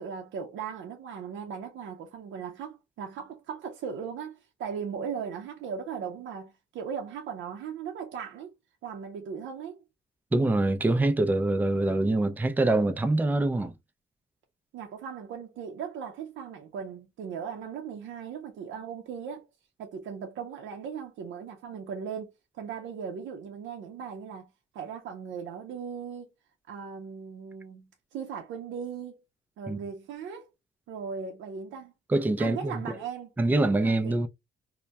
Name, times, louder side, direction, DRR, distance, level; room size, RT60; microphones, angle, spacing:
voice 1, 0.0-8.5 8.8-9.8 14.7-19.5 19.8-26.3 26.7-29.2 29.6-30.5 30.9-31.9 32.4-33.3 33.8-34.2, right 7 dB, 75° right, 0.5 m, -38 dB
voice 2, 10.3-13.7 29.7-29.8 32.1-33.0 33.4-34.3, right 2 dB, 10° right, 0.3 m, -25 dB
2.2 x 2.1 x 2.6 m
cardioid pair, 90°, 20 cm